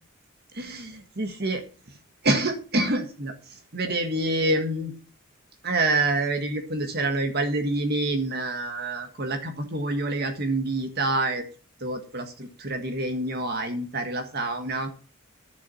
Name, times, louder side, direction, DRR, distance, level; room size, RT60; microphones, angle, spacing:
voice 1, 0.5-1.6 2.2-3.3 3.7-4.9 5.6-11.4 11.8-14.9, right 2 dB, 50° right, 6 dB, 1.7 m, -27 dB
11.5 x 7.2 x 5.5 m, 0.37 s
head